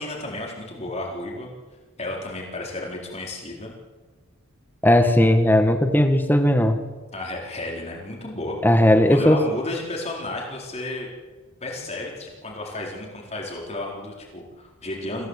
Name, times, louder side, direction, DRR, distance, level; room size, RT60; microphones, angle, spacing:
voice 1, 0.0-1.5 2.0-3.7 7.1-8.8 9.1-11.1 11.6-15.3, left 2 dB, 30° left, -2 dB, 4.5 m, -32 dB
voice 2, 4.8-6.8 8.6-9.4, left 1 dB, 10° left, 5 dB, 1.7 m, -17 dB
26.5 x 16.5 x 8.4 m, 1.3 s
head